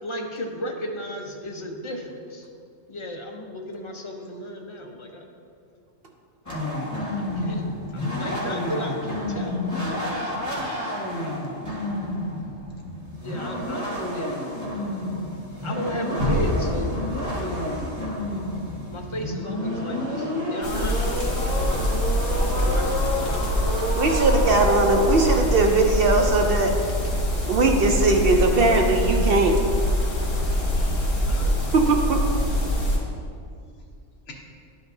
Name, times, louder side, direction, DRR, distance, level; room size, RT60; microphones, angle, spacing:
voice 1, 0.0-2.5 2.9-5.3 7.2-10.0 13.2-14.4 15.6-17.0 18.9-21.9 22.3-23.6 31.3-31.6, equal, 30° left, 1 dB, 0.6 m, -35 dB
sound 1, 6.5-25.4, left 1 dB, 15° left, 1.5 m, -30 dB
voice 2, 6.6-7.2 30.5-31.7 34.3-34.4, left 2 dB, 70° left, 0 dB, 1.3 m, -48 dB
sound 2, 16.2-20.1, left 1 dB, 30° right, 1.1 m, -29 dB
sound 3, 20.6-33.0, left 1 dB, 90° left, 2.0 m, -24 dB
voice 3, 23.9-26.7 27.5-29.6 31.7-32.2, right 3 dB, 60° right, 2 dB, 0.7 m, -20 dB
11.5 x 5.2 x 2.6 m, 2.4 s
omnidirectional pair, 1.3 m